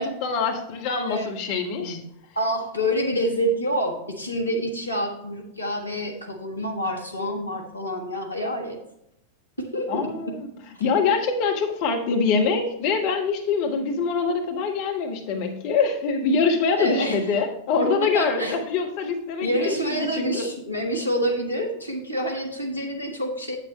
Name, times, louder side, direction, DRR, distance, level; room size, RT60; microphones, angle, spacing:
voice 1, 0.0-2.0 9.9-10.5 10.8-20.5, left 4 dB, 45° left, 2 dB, 1.4 m, -24 dB
voice 2, 2.3-8.8 9.6-10.4 16.8-17.2 18.0-18.6 19.4-23.6, equal, 85° left, 1 dB, 1.4 m, -27 dB
8.6 x 8.5 x 3.1 m, 0.80 s
figure-of-eight pair, 90°, 0 cm